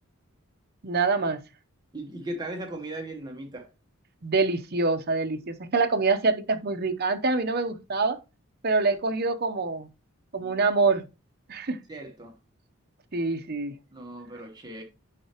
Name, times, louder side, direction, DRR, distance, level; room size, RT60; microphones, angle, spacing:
voice 1, 0.8-1.4 4.2-8.2 8.6-9.9 10.3-11.0 11.5-11.8 13.1-13.7, right 3 dB, 45° right, 0.7 m, -25 dB
voice 2, 1.9-3.7 11.9-12.3 13.9-14.8, right 1 dB, 20° right, 1.1 m, -37 dB
9.9 x 5.6 x 2.9 m
head